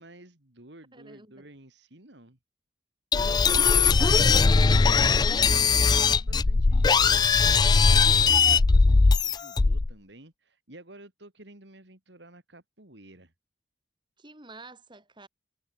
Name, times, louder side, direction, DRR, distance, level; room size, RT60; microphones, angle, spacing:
voice 1, 0.0-2.4 5.1-13.3, right 1 dB, 70° right, 3.6 m, -51 dB
voice 2, 0.9-1.3 3.2-4.8 14.2-15.3, right 2 dB, 25° right, 4.4 m, -48 dB
sound 1, 3.1-9.9, left 4 dB, 20° left, 0.3 m, -20 dB
head